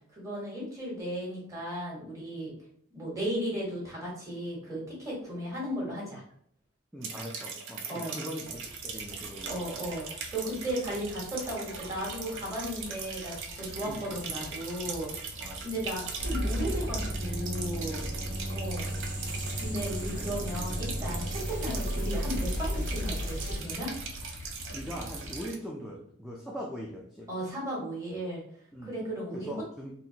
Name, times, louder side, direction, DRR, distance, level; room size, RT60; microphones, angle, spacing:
voice 1, 0.1-2.5 2.9-6.2 7.9-8.1 9.4-10.1 10.3-15.1 15.6-18.1 18.5-18.9 19.6-23.9 27.3-28.4 28.8-29.5, equal, 15° right, -5 dB, 1.4 m, -35 dB
voice 2, 6.9-9.5 13.8-14.1 15.4-15.7 24.7-27.3 28.7-28.9 29.3-29.9, equal, ahead, -3 dB, 0.4 m, -41 dB
sound 1, 7.0-25.5, right 5 dB, 60° right, 0.5 m, -40 dB
sound 2, 8.4-25.4, left 2 dB, 65° left, 0.4 m, -47 dB
sound 3, 16.2-23.6, equal, 40° right, 0.9 m, -33 dB
3.9 x 2.1 x 2.8 m, 0.64 s
head